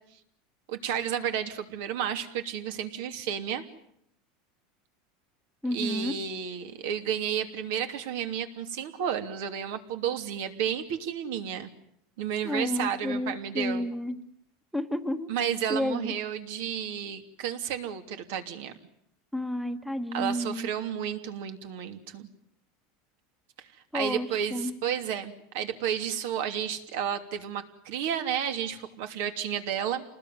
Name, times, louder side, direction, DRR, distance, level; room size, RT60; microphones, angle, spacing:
voice 1, 0.7-3.6 5.6-11.7 12.2-13.9 15.3-18.7 20.1-22.3 23.6-23.7 23.9-30.0, right 9 dB, 70° right, 7 dB, 3.0 m, -32 dB
voice 2, 5.6-6.2 12.4-14.2 14.7-15.3 15.7-16.1 19.3-20.7 23.9-24.7, left 1 dB, ahead, 8 dB, 1.3 m, -31 dB
28.5 x 20.0 x 9.5 m, 0.76 s
supercardioid pair, 150°, 0 cm